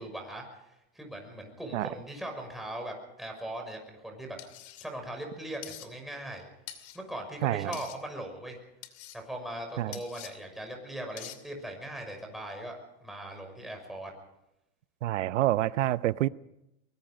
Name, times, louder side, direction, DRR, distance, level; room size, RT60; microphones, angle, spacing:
voice 1, 0.0-4.4 4.8-6.5 6.9-8.6 9.1-14.1, right 1 dB, ahead, 5.9 m, -40 dB
sound 1, 4.4-4.9 5.6-5.9 6.7-7.0 7.7-8.0 8.8-9.2 9.9-10.3 11.2-11.4, left 13 dB, 60° left, 2.7 m, -44 dB
voice 2, 7.4-7.7 9.8-10.0 15.0-16.3, right 15 dB, 90° right, 0.9 m, -27 dB
23.5 x 22.0 x 5.1 m
supercardioid pair, 140°, 36 cm